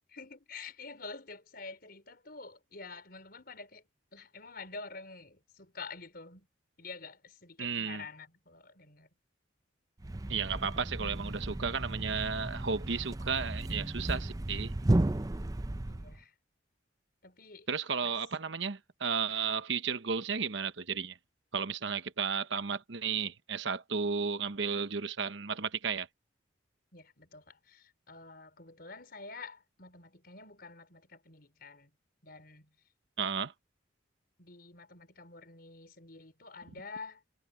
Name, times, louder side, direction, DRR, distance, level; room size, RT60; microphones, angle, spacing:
voice 1, 0.1-3.8 4.1-6.5 6.8-9.1 15.9-16.3 17.2-17.7 18.0-18.1 26.9-31.9 32.2-32.7 34.4-37.2, left 4 dB, 55° left, 4.9 m, -48 dB
voice 2, 7.6-8.0 10.3-14.7 17.7-21.2 21.5-26.1 33.2-33.5, right 6 dB, 75° right, 1.0 m, -33 dB
Thump thud, 10.0-16.2, right 1 dB, 20° right, 0.5 m, -34 dB
head